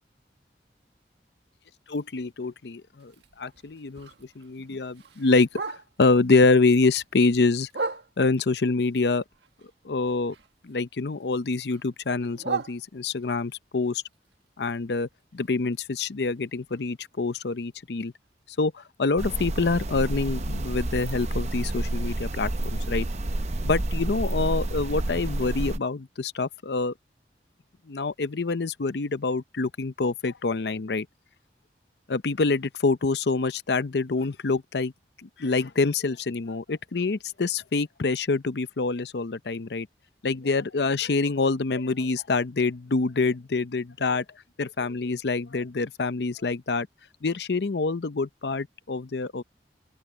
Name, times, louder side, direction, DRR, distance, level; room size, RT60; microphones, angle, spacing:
voice 1, 1.9-3.1 3.4-4.1 4.4-5.5 6.0-7.7 8.2-9.2 9.8-10.3 10.6-14.0 14.6-18.1 18.6-23.1 23.6-26.9 27.9-31.1 32.1-34.9 35.2-39.9 40.2-44.2 44.6-46.9 47.2-49.4, left 3 dB, 75° left, 0.7 m, -26 dB
Bark, 3.0-6.2 6.6-8.5 9.0-10.8 11.1-13.4 13.8-17.7 18.1-18.2 18.5-18.9 19.3-19.4 19.7-19.8 20.3-20.4, right 4 dB, 80° right, 1.6 m, -39 dB
sound 1, 19.2-25.8, right 1 dB, 40° right, 0.7 m, -29 dB
open air
head